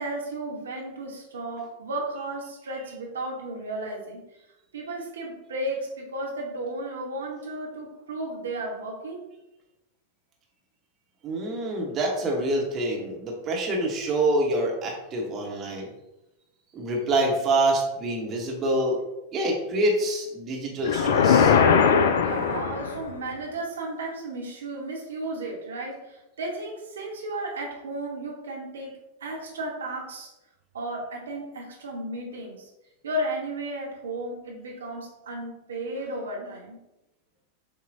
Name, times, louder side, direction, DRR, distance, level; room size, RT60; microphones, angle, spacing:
voice 1, 0.0-4.2 4.7-9.3 22.1-30.3 30.7-32.7 33.0-36.8, right 1 dB, 65° right, 0 dB, 1.0 m, -34 dB
voice 2, 11.2-15.9 16.7-19.0 19.3-21.6, right 1 dB, 30° right, -1 dB, 0.9 m, -26 dB
sound 1, 20.8-23.2, left 6 dB, 60° left, 0.3 m, -20 dB
6.8 x 2.4 x 2.6 m, 0.94 s
figure-of-eight pair, 90°, 0 cm